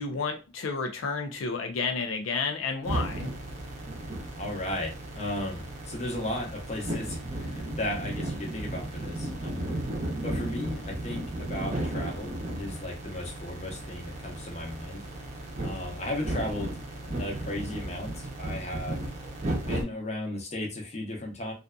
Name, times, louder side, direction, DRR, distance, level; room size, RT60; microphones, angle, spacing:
voice 1, 0.0-3.3, left 4 dB, 90° left, 0.4 m, -31 dB
sound 1, 2.8-19.8, right 1 dB, 35° right, 0.6 m, -34 dB
voice 2, 4.4-9.7 10.2-15.0 15.6-16.7 17.1-19.0 19.7-21.5, left 1 dB, 35° left, 0.7 m, -35 dB
2.5 x 2.4 x 2.2 m
head